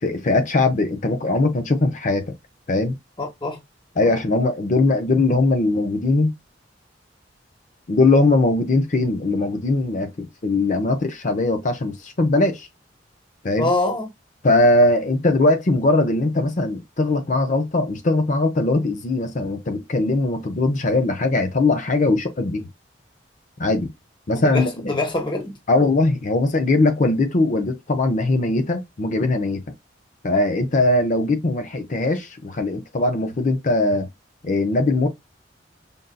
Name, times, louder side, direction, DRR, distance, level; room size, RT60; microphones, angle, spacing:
voice 1, 0.0-2.2 2.7-3.0 4.0-6.3 7.9-12.7 13.4-13.7 14.4-22.7 23.6-23.9 24.3-24.9 25.7-29.6 30.2-34.1 34.4-35.1, left 2 dB, 45° left, 0.6 m, -20 dB
voice 2, 3.2-3.6 4.0-4.1 13.6-14.1 24.3-25.6, left 2 dB, 25° left, 1.2 m, -25 dB
5.3 x 2.6 x 2.2 m
head